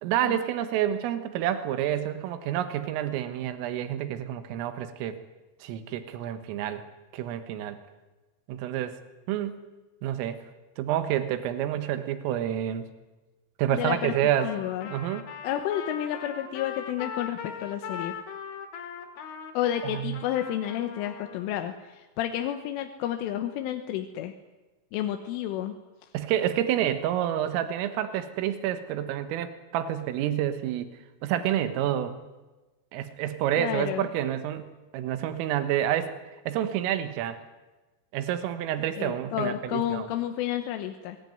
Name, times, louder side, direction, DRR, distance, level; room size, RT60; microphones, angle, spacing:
voice 1, 0.0-5.2 5.6-6.8 7.1-7.8 8.5-9.0 9.3-9.6 10.0-10.4 10.8-12.9 13.6-14.5 14.9-15.3 19.8-20.2 26.1-30.9 31.2-32.2 32.9-36.1 36.5-37.4 38.1-40.1, right 11 dB, 85° right, 10 dB, 3.9 m, -28 dB
voice 2, 13.7-14.1 14.4-14.9 15.4-18.2 19.5-24.3 24.9-25.8 33.6-34.1 39.0-41.2, left 11 dB, 80° left, 6 dB, 3.5 m, -31 dB
Trumpet, 14.4-21.5, left 7 dB, 55° left, 3.3 m, -40 dB
24.0 x 20.0 x 9.4 m, 1.2 s
omnidirectional pair, 5.9 m